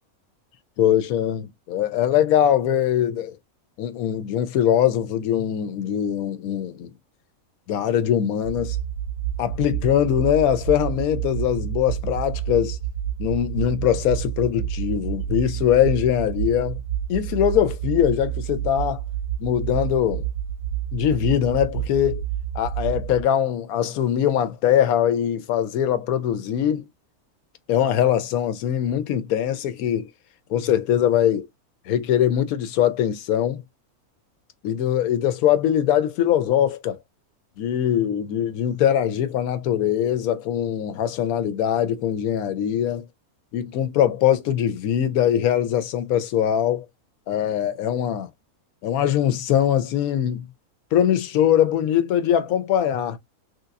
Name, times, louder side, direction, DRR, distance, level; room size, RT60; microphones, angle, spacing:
voice 1, 0.8-3.4 3.8-6.9 7.7-8.8 9.4-12.8 13.2-16.8 17.1-19.0 19.4-20.3 20.9-22.2 22.5-26.9 27.7-30.1 30.5-31.5 31.9-33.6 34.6-37.0 37.6-43.1 43.5-46.9 47.3-48.3 48.8-50.5 50.9-53.2, left 10 dB, 75° left, 1.1 m, -22 dB
sound 1, 8.4-23.2, right 11 dB, 65° right, 0.9 m, -29 dB
3.3 x 2.9 x 2.4 m
omnidirectional pair, 1.6 m